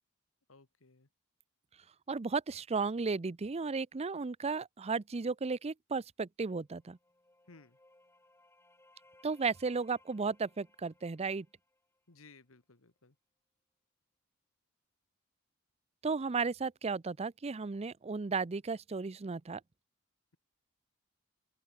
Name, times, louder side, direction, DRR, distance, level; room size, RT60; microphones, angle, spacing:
voice 1, 0.5-1.1 7.5-7.8 12.1-13.2, left 3 dB, 85° left, 1.9 m, -59 dB
voice 2, 2.1-7.0 9.2-11.5 16.0-19.6, right 4 dB, 30° right, 0.5 m, -34 dB
sound 1, 6.6-12.3, left 2 dB, 10° left, 6.9 m, -66 dB
open air
head